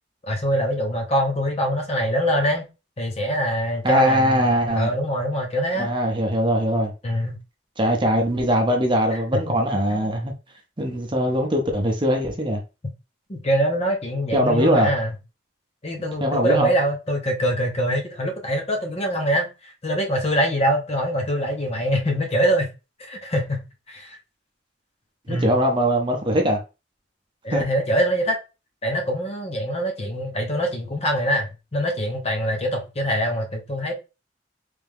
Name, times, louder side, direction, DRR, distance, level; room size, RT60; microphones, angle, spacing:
voice 1, 0.2-2.6 3.0-5.9 7.0-7.4 9.1-9.2 9.9-10.1 13.3-15.1 15.8-22.7 23.0-24.2 25.3-25.5 27.4-28.4 28.8-33.9, equal, 35° left, 0.8 m, -24 dB
voice 2, 3.8-4.9 5.8-6.9 7.8-10.3 10.8-12.6 14.3-14.9 16.2-16.7 25.3-26.6 27.5-27.6, equal, 25° right, 0.7 m, -21 dB
3.3 x 2.9 x 3.5 m
head